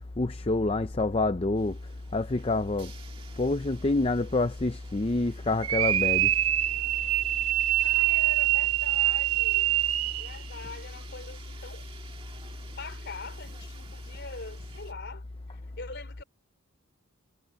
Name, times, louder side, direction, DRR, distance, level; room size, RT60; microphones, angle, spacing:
voice 1, 0.2-1.8 2.1-2.9 3.4-6.3, left 2 dB, 25° left, 0.5 m, -27 dB
sound 1, 1.6-14.9, right 4 dB, 25° right, 1.8 m, -52 dB
sound 2, 5.6-10.3, right 14 dB, 75° right, 0.8 m, -25 dB
voice 2, 7.8-9.7 10.2-11.8 12.8-16.2, left 4 dB, 50° left, 4.3 m, -43 dB
head